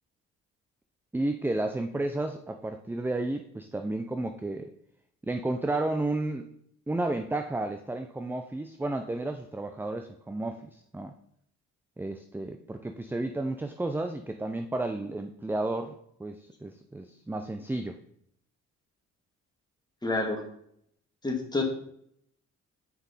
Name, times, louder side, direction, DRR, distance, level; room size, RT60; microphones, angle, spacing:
voice 1, 1.1-4.7 5.2-6.5 6.9-11.1 12.0-15.9 16.2-18.0, right 2 dB, 5° right, 7 dB, 0.4 m, -32 dB
voice 2, 20.0-20.4 21.2-21.6, left 2 dB, 15° left, 0 dB, 2.0 m, -28 dB
8.3 x 4.9 x 4.1 m, 0.70 s
cardioid pair, 90°, 30 cm